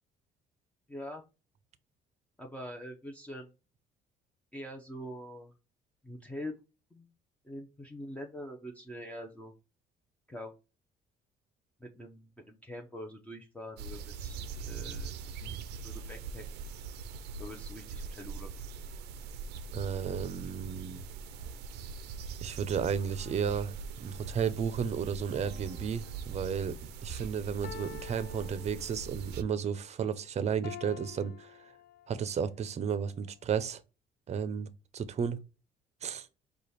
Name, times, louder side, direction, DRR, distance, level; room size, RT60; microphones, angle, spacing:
voice 1, 0.9-1.2 2.4-3.5 4.5-5.5 6.0-6.5 6.9-7.1 7.4-9.5 10.3-10.6 11.8-15.6 15.8-16.5 17.4-18.5, equal, 10° left, 0.8 m, -44 dB
sound 1, 13.8-29.4, right 5 dB, 80° right, 0.5 m, -42 dB
voice 2, 19.7-21.0 22.4-31.6 32.1-33.8 34.3-35.4 36.0-36.3, right 7 dB, 40° right, 0.6 m, -33 dB
sound 2, 25.3-26.6 27.6-29.3 30.6-32.4 33.0-33.1, left 8 dB, 70° left, 0.5 m, -48 dB
4.9 x 2.4 x 4.1 m
cardioid pair, 110°, 17 cm